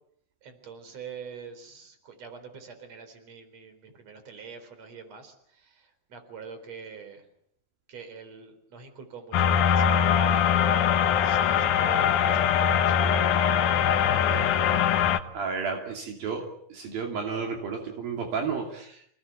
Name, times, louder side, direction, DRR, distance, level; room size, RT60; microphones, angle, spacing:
voice 1, 0.4-7.3 7.9-13.1, right 6 dB, 45° right, 9 dB, 5.2 m, -45 dB
sound 1, 9.3-15.2, left 8 dB, 65° left, 2.5 m, -22 dB
voice 2, 15.3-19.1, right 5 dB, 70° right, 2 dB, 4.5 m, -32 dB
28.0 x 19.0 x 9.1 m, 0.71 s
omnidirectional pair, 4.4 m